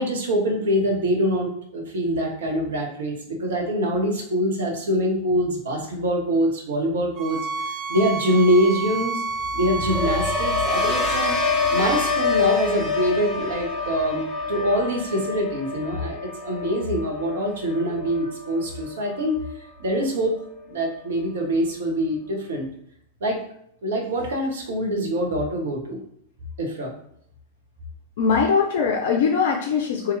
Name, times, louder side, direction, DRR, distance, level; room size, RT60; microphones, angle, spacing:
voice 1, 0.0-7.4 7.9-9.2 9.5-11.4 11.7-19.4 19.8-20.3 20.6-22.7 23.2-23.4 23.8-26.0 26.6-26.9, equal, 60° right, 1 dB, 0.8 m, -24 dB
sound 1, 7.2-12.2, right 3 dB, 30° right, 0.4 m, -29 dB
sound 2, 9.4-19.5 19.9-20.3, left 4 dB, 15° left, 0.6 m, -27 dB
voice 2, 28.2-30.1, left 6 dB, 55° left, 1 dB, 0.4 m, -21 dB
2.8 x 2.3 x 3.3 m, 0.69 s
figure-of-eight pair, 90°, 0 cm